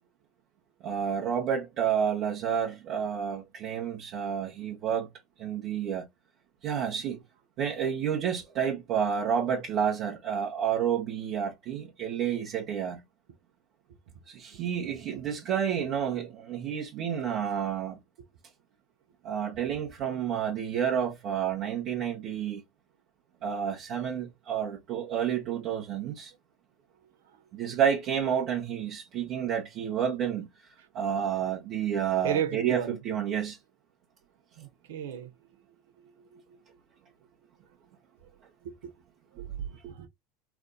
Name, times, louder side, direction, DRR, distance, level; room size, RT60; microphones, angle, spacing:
voice 1, 0.8-5.1 5.4-6.0 6.6-7.2 7.6-13.0 14.3-18.0 19.2-22.6 23.4-26.3 27.5-30.5 30.9-33.6 39.4-39.5, right 8 dB, 50° right, 1.1 m, -30 dB
voice 2, 32.2-33.0 34.6-35.3 36.2-36.4 38.6-38.7 39.9-40.1, right 9 dB, 75° right, 0.8 m, -33 dB
3.5 x 2.4 x 2.3 m
hypercardioid pair, 85°, 0 cm